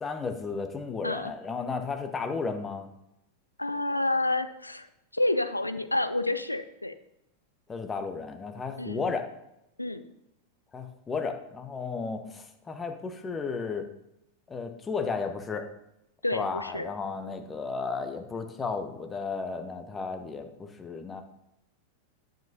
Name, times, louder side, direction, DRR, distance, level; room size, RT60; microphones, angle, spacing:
voice 1, 0.0-2.9 7.7-9.3 10.7-13.9 14.5-15.7 16.3-21.2, left 4 dB, 15° left, 6 dB, 0.8 m, -34 dB
voice 2, 3.6-4.9 5.1-6.9 8.8-9.1 9.8-10.0 16.2-16.9, left 2 dB, 85° left, 11 dB, 0.4 m, -29 dB
9.0 x 7.6 x 2.8 m, 0.83 s
figure-of-eight pair, 90°, 0 cm